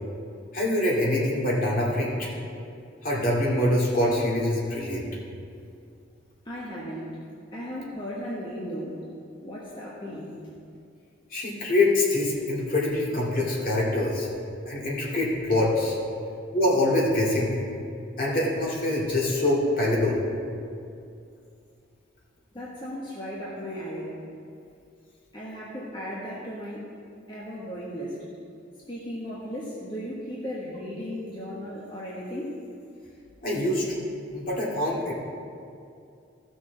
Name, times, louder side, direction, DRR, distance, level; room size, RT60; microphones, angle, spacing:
voice 1, 0.5-2.3 3.0-5.0 11.3-14.3 14.7-16.0 16.5-17.6 18.2-20.2 33.4-34.0 34.3-35.1, left 1 dB, 50° left, -5 dB, 2.2 m, -24 dB
voice 2, 6.4-7.2 7.5-9.0 9.4-10.3 22.5-24.2 25.3-26.9 27.3-28.2 28.9-32.6, equal, 25° left, -7 dB, 1.3 m, -36 dB
15.5 x 6.4 x 3.9 m, 2.5 s
head